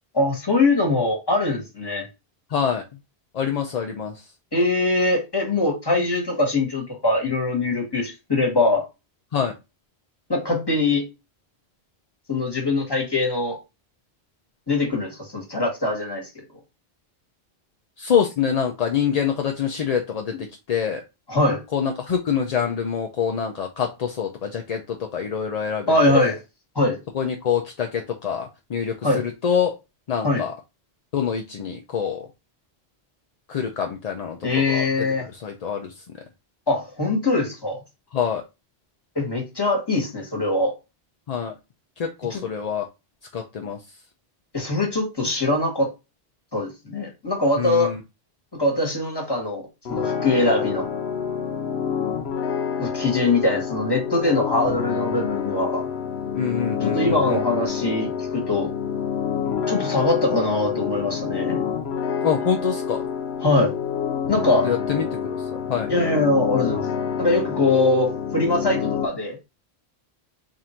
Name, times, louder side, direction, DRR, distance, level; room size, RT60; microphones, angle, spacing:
voice 1, 0.1-2.1 4.5-8.8 10.3-11.0 12.3-13.6 14.7-16.4 20.3-20.4 21.3-21.6 25.9-26.3 26.7-27.0 29.0-29.2 30.2-30.4 34.4-35.2 36.7-37.8 39.1-40.7 42.3-42.4 44.5-45.9 46.5-47.9 48.5-50.9 52.8-55.8 56.8-58.7 59.7-61.6 63.4-63.7 64.3-64.7 65.9-66.9 67.2-69.4, left 2 dB, 25° left, 1.4 m, -22 dB
voice 2, 2.5-2.8 3.3-4.2 9.3-9.5 18.0-20.3 20.7-21.0 21.7-26.3 27.1-29.7 30.1-30.5 31.1-32.3 33.5-35.1 35.3-35.9 38.1-38.4 41.3-41.5 42.0-42.8 43.3-43.8 47.6-48.0 56.3-57.4 62.2-63.0 64.6-65.0 65.5-65.9, left 7 dB, 50° left, 0.5 m, -25 dB
sound 1, 49.9-69.1, left 7 dB, 80° left, 1.0 m, -27 dB
3.7 x 2.6 x 4.2 m
omnidirectional pair, 1.1 m